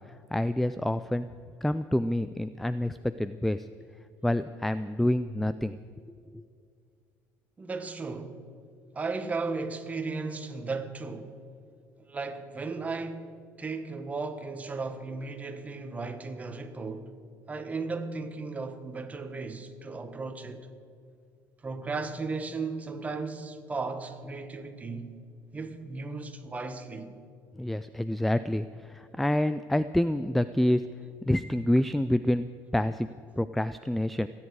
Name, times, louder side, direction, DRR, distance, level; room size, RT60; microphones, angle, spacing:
voice 1, 0.1-1.3 1.6-3.7 4.2-5.8 6.3-6.4 27.6-30.8 31.2-32.5 32.7-33.1 33.4-34.3, left 1 dB, ahead, 0.3 m, -27 dB
voice 2, 7.6-8.4 8.9-11.4 12.1-13.3 13.6-17.1 17.5-20.7 21.6-25.1 25.5-27.1, right 4 dB, 20° right, 1.4 m, -35 dB
27.0 x 9.7 x 4.8 m
cardioid pair, 115°, 7 cm